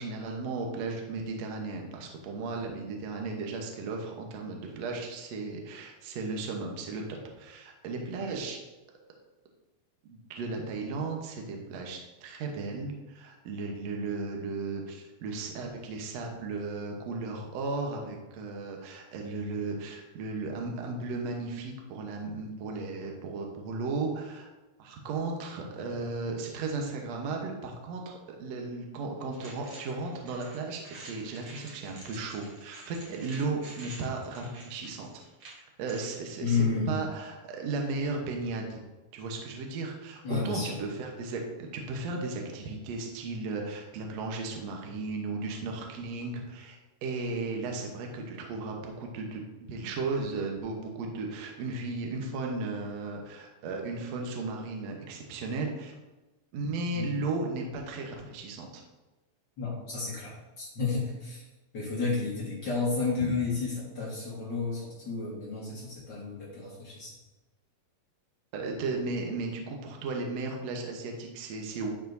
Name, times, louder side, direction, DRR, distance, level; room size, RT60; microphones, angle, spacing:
voice 1, 0.0-8.6 10.0-24.5 24.8-35.1 35.8-38.9 39.1-49.4 49.7-55.9 56.5-58.8 68.5-71.9, right 3 dB, 90° right, 1 dB, 1.4 m, -35 dB
sound 1, 29.3-36.2, right 2 dB, 55° right, 1.8 m, -49 dB
voice 2, 36.4-37.0 40.2-40.8 56.9-57.1 59.6-61.4 61.7-67.1 68.7-68.9, left 4 dB, 80° left, -6 dB, 0.9 m, -31 dB
11.0 x 4.8 x 2.6 m, 1.1 s
omnidirectional pair, 4.5 m